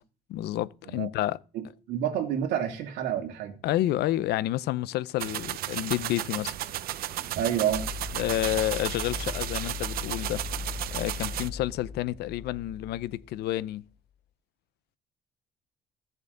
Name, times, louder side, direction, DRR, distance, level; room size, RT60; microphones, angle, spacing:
voice 1, 0.3-1.4 3.6-6.5 8.1-10.4 10.9-13.8, left 14 dB, 75° left, 0.6 m, -29 dB
voice 2, 1.5-3.6 7.4-7.9, right 9 dB, 90° right, 2.6 m, -29 dB
sound 1, 5.2-11.5, right 13 dB, 60° right, 0.6 m, -34 dB
sound 2, 5.6-13.6, left 5 dB, 50° left, 1.3 m, -40 dB
16.0 x 7.1 x 3.9 m
cardioid pair, 110°, 17 cm